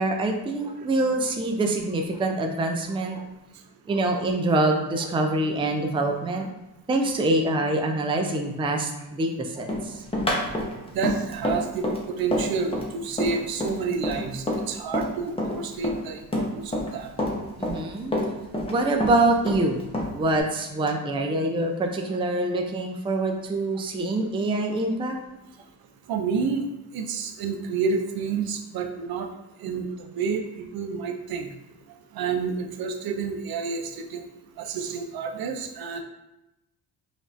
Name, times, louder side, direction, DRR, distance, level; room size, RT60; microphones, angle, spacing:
voice 1, 0.0-3.2 3.9-6.5 6.9-10.0 17.6-18.1 18.7-19.8 20.1-25.2, right 2 dB, 15° right, 3 dB, 0.4 m, -25 dB
Run, 9.7-15.1 15.4-16.9 17.2-18.7 19.0-20.4, left 1 dB, 15° left, 0.8 m, -27 dB
voice 2, 10.9-17.1 26.1-26.7 26.9-29.3 29.6-31.5 32.1-34.2 34.6-36.0, right 5 dB, 65° right, 5 dB, 0.5 m, -29 dB
5.1 x 2.5 x 2.5 m, 0.93 s
cardioid pair, 85°, 40 cm